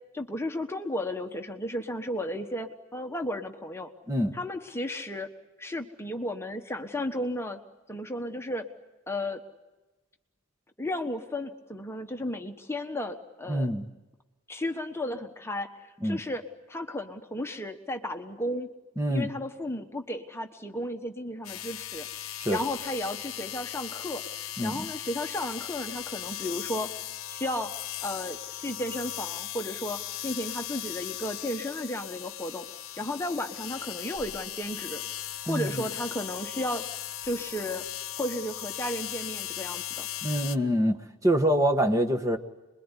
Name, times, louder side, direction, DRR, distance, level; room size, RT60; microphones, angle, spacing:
voice 1, 0.1-3.9 4.3-5.3 5.6-7.6 7.9-8.6 9.1-9.4 10.8-13.7 14.5-16.4 16.7-18.7 19.1-26.9 27.3-27.7 28.0-32.7 33.0-35.0 35.5-36.8 37.2-37.8 38.2-40.1, left 1 dB, 10° left, 5 dB, 1.2 m, -34 dB
voice 2, 13.5-13.8 16.0-16.2 19.0-19.3 22.4-22.6 24.6-24.9 35.5-35.8 40.2-42.4, equal, 15° right, 4 dB, 1.2 m, -25 dB
sound 1, 21.4-40.6, left 12 dB, 80° left, 0.9 m, -38 dB
27.5 x 22.0 x 9.9 m, 1.1 s
head